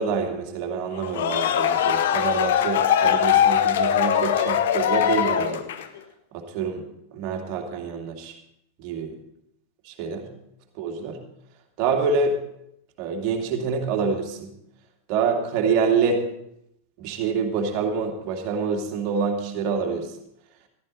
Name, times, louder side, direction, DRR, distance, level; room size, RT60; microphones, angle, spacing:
voice 1, 0.0-5.6 6.3-8.3 8.8-9.2 9.8-10.3 10.7-11.2 11.8-12.4 13.0-14.5 15.1-16.2 17.0-20.2, right 5 dB, 40° right, 2 dB, 2.5 m, -26 dB
sound 1, 1.0-6.0, left 9 dB, 55° left, 0.9 m, -21 dB
14.5 x 13.0 x 4.2 m, 0.77 s
figure-of-eight pair, 90°, 0 cm